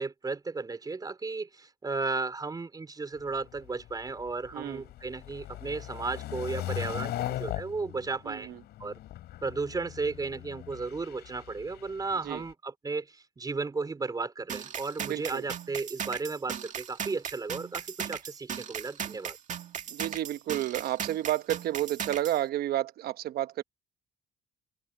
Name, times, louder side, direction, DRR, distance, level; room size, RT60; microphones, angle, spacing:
voice 1, 0.0-8.5 8.8-9.0 9.4-19.4, right 4 dB, 20° right, 4.0 m, -34 dB
sound 1, 3.2-12.5, left 14 dB, 75° left, 7.4 m, -39 dB
voice 2, 4.5-4.8 8.3-8.6 12.2-12.4 15.0-15.4 19.9-23.6, right 13 dB, 65° right, 1.0 m, -31 dB
sound 2, 14.5-22.4, right 8 dB, 45° right, 2.1 m, -37 dB
cardioid pair, 110°, 17 cm